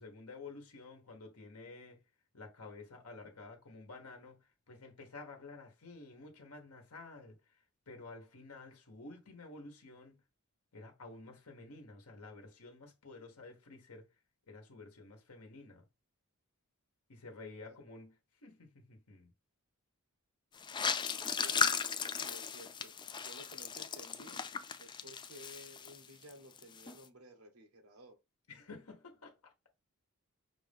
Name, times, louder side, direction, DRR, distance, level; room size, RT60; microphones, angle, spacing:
voice 1, 0.0-2.0 2.3-4.4 4.7-7.4 7.9-10.2 10.7-14.1 14.5-15.8 17.1-18.1 18.4-19.3 28.5-29.3, left 3 dB, 80° left, 1.2 m, -51 dB
sound 1, 20.6-26.3 26.6-27.0, left 6 dB, 20° left, 0.3 m, -36 dB
voice 2, 21.2-22.9 23.2-24.4 24.8-28.2, right 1 dB, 75° right, 1.1 m, -55 dB
5.9 x 2.6 x 3.5 m
head